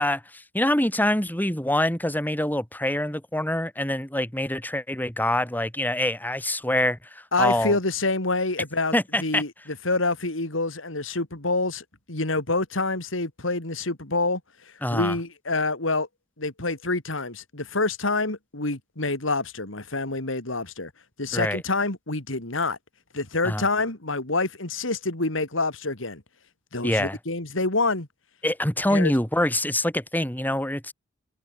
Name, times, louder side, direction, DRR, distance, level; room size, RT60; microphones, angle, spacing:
voice 1, 0.0-7.8 8.9-9.4 14.8-15.1 21.3-21.6 23.4-23.6 26.8-27.2 28.4-30.9, left 1 dB, 10° left, 4.4 m, -25 dB
voice 2, 7.3-8.9 9.2-9.5 9.8-14.4 14.9-16.1 16.4-20.9 21.2-22.8 23.1-26.2 26.7-28.1 28.9-29.1, left 3 dB, 85° left, 3.6 m, -27 dB
head